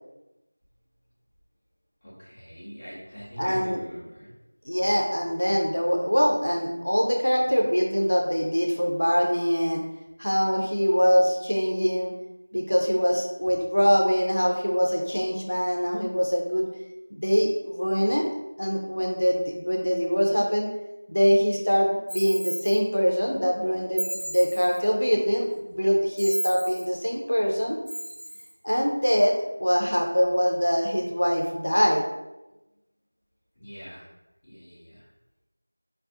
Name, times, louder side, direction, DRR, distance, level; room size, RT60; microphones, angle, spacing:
voice 1, 2.0-4.3 33.6-34.0 34.5-35.0, equal, 15° left, -12 dB, 0.5 m, -41 dB
voice 2, 3.4-3.8 4.7-9.8 10.2-12.1 12.5-16.7 17.1-18.3 18.6-20.7 21.1-27.8 28.6-32.0, equal, 75° left, 0 dB, 0.5 m, -23 dB
sound 1, 22.1-22.8 24.0-24.8 26.2-26.9 27.9-28.5, equal, 20° right, 0.8 m, -33 dB
2.3 x 2.3 x 2.6 m, 0.99 s
figure-of-eight pair, 180°, 0 cm